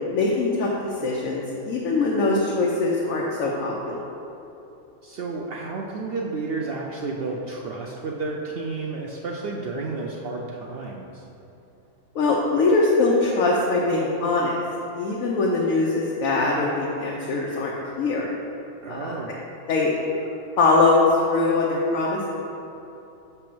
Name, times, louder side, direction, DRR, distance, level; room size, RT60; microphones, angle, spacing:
voice 1, 0.1-0.7 1.0-4.0 12.1-14.6 15.0-18.3 18.9-19.1 19.7-19.9 20.6-22.3, left 3 dB, 90° left, -3 dB, 1.1 m, -22 dB
voice 2, 5.0-11.2 18.8-19.3, right 3 dB, 65° right, -1 dB, 0.6 m, -31 dB
6.1 x 3.4 x 5.9 m, 2.9 s
omnidirectional pair, 1.4 m